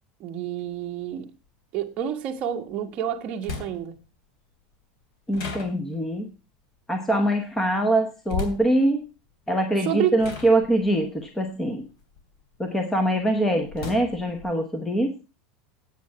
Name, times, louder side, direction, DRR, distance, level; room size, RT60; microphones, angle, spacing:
voice 1, 0.2-1.3 1.7-3.9 9.8-10.1, right 10 dB, 30° right, 1.4 m, -29 dB
sound 1, 0.6-0.7 2.7-2.8 3.4-4.1 5.3-6.2 8.3-8.8 9.6-9.8 10.2-12.6 13.0-14.5, left 5 dB, 55° left, 3.1 m, -36 dB
voice 2, 5.3-6.3 6.9-9.0 9.5-11.8 12.6-15.1, right 1 dB, 5° left, 1.0 m, -23 dB
9.1 x 8.6 x 5.7 m
supercardioid pair, 175°, 4 cm